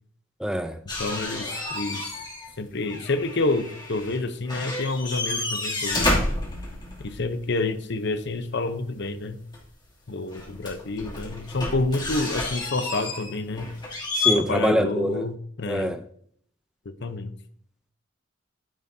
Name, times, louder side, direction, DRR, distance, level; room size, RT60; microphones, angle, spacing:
voice 1, 0.4-0.7 14.2-15.2 15.7-16.0, equal, 5° right, 0.5 m, -24 dB
sound 1, 0.9-2.5 2.8-4.2 4.5-7.2 9.5-9.6 10.3-14.3, left 2 dB, 20° left, 2.7 m, -30 dB
voice 2, 1.0-2.0 2.6-6.2 7.0-9.4 10.1-13.7 14.3-15.9 16.8-17.3, left 2 dB, 55° left, 0.8 m, -28 dB
11.0 x 10.0 x 2.8 m
head